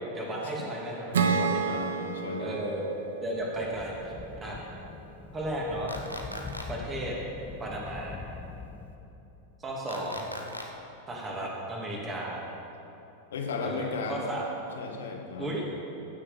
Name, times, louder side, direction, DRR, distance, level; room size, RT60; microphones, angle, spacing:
voice 1, 0.1-1.6 2.4-2.8 3.2-4.1 4.4-4.6 5.3-5.9 6.7-7.1 7.6-8.2 9.6-10.3 11.1-12.4 13.6-14.5 15.4-15.6, right 1 dB, 20° right, -3 dB, 2.8 m, -34 dB
Acoustic guitar / Strum, 1.1-4.6, right 5 dB, 65° right, 0.9 m, -30 dB
voice 2, 1.7-2.6 13.3-14.3 14.7-15.6, left 4 dB, 65° left, 3 dB, 1.5 m, -35 dB
sound 1, 3.4-9.5, left 4 dB, 15° left, 0.6 m, -44 dB
sound 2, 5.9-6.6 9.9-10.6, equal, 90° right, 1.0 m, -38 dB
16.0 x 7.4 x 5.3 m, 3.0 s
figure-of-eight pair, 90°, 0 cm